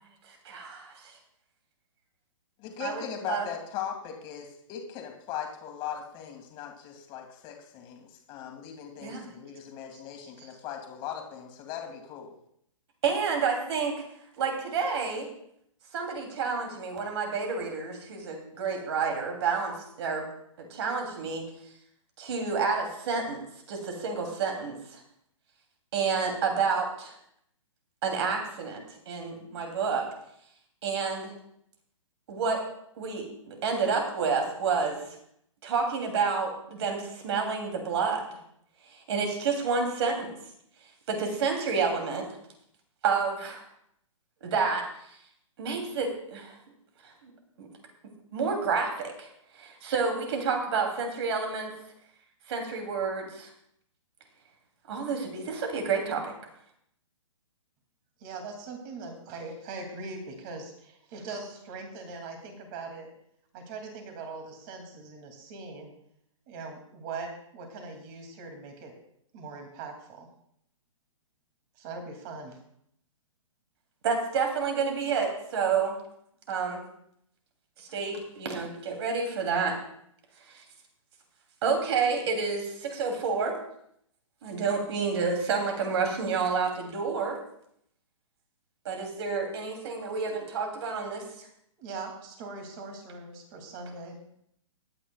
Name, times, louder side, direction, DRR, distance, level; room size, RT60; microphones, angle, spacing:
voice 1, 0.3-0.9 2.8-3.5 9.0-9.3 13.0-13.9 14.4-15.3 15.9-20.3 20.6-21.4 22.2-23.4 23.7-25.0 25.9-27.1 28.0-30.1 30.8-31.3 32.3-32.6 33.0-35.0 35.6-38.3 38.9-40.3 41.1-42.3 43.0-43.6 44.4-44.8 45.6-46.5 47.0-47.3 47.6-47.7 48.3-49.3 49.6-51.7 52.5-53.5 54.9-56.3 74.0-75.9 76.5-76.8 77.8-79.8 80.5-80.6 81.6-83.6 84.4-87.4 88.8-91.2, right 5 dB, 55° right, 3 dB, 2.9 m, -29 dB
voice 2, 2.6-12.4, left 9 dB, 30° left, 3 dB, 2.1 m, -39 dB
voice 3, 58.2-63.1 63.5-65.9 66.5-68.9 69.3-70.3 71.8-72.6 91.8-94.2, right 3 dB, 35° right, 4 dB, 2.6 m, -41 dB
20.0 x 9.1 x 2.3 m, 0.71 s
hypercardioid pair, 140°, 17 cm